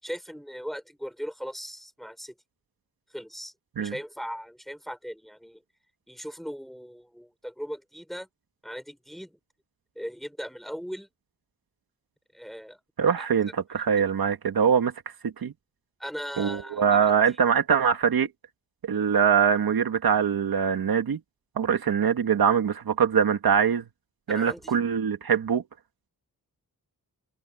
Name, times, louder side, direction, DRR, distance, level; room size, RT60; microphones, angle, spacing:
voice 1, 0.0-2.3 3.1-3.5 3.8-5.6 6.1-8.3 8.6-9.4 9.9-11.1 12.3-12.8 13.2-13.3 13.7-13.8 16.0-17.1 24.3-24.7, equal, ahead, 5.2 m, -38 dB
voice 2, 13.0-14.9 15.2-15.5 16.4-18.3 18.9-21.2 21.6-23.8 24.3-25.6, right 7 dB, 75° right, 2.1 m, -23 dB
wide cardioid pair, 120°, 36 cm